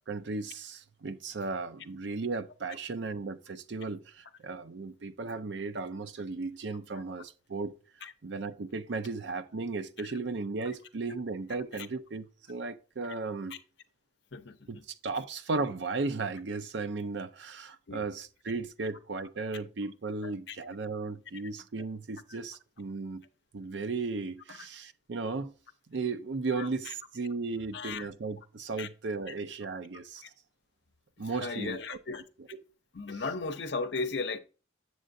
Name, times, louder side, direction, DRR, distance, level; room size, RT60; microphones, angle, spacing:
voice 1, 0.1-7.7 8.2-13.6 14.7-14.8 15.0-23.2 23.5-25.5 25.9-30.2 31.2-32.0, right 3 dB, 65° right, 0.5 m, -35 dB
voice 2, 14.3-14.8 17.9-18.0 20.2-20.6 24.6-24.7 26.6-26.9 27.7-28.1 28.8-28.9 30.2-30.3 31.3-32.2 32.9-34.4, left 4 dB, 60° left, 0.6 m, -36 dB
7.6 x 6.7 x 2.6 m
head